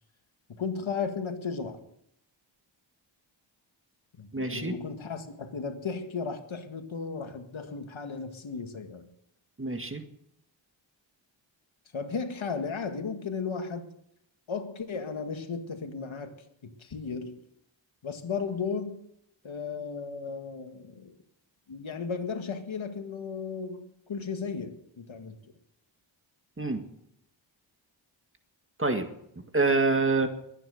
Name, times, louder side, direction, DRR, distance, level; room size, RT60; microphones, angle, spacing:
voice 1, 0.5-1.8 4.2-9.1 11.9-13.9 14.5-16.3 16.6-17.4 18.0-19.0 19.4-21.2 21.7-25.4, left 5 dB, 80° left, 6 dB, 2.0 m, -35 dB
voice 2, 4.3-4.8 9.6-10.0 26.6-26.8 28.8-29.1 29.5-30.3, right 3 dB, 25° right, 6 dB, 1.9 m, -26 dB
22.0 x 9.3 x 6.5 m, 0.76 s
wide cardioid pair, 105°, 47 cm